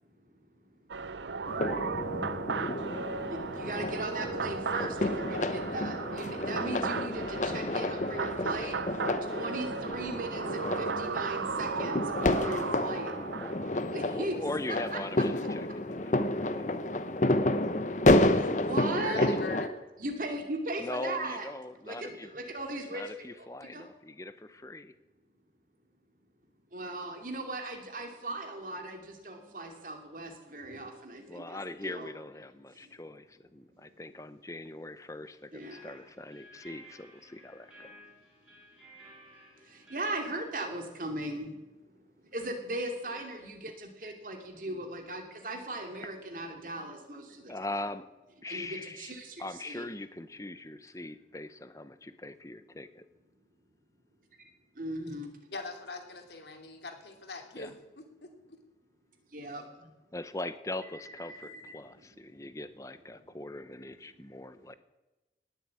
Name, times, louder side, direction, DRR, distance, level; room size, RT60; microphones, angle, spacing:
sound 1, 0.9-13.8, right 5 dB, 85° right, 0.6 m, -36 dB
sound 2, 1.5-19.7, left 1 dB, 45° left, 0.9 m, -30 dB
voice 1, 2.5-13.2 13.9-14.4 14.9-15.3 18.4-19.3 20.0-21.5 21.9-23.0 23.4-23.5 23.7-23.9 26.7-32.1 32.8-32.9 35.5-36.0 39.6-47.6 48.5-49.9 54.4-54.5 54.7-55.4 59.3-59.9 61.4-61.5 62.1-62.4, right 1 dB, 50° right, 4 dB, 2.7 m, -38 dB
voice 2, 13.8-16.7 19.1-19.2 20.8-22.3 22.9-24.9 31.3-37.9 47.5-48.1 48.4-49.1 49.4-53.1 57.6-57.7 60.1-64.7, left 2 dB, 20° left, 12 dB, 0.8 m, -41 dB
voice 3, 19.0-19.7 55.1-55.2 55.5-58.6, left 3 dB, 75° left, 4 dB, 2.9 m, -42 dB
sound 3, 35.3-40.4, equal, 10° right, 5.9 m, -55 dB
19.0 x 7.9 x 8.5 m, 1.1 s
head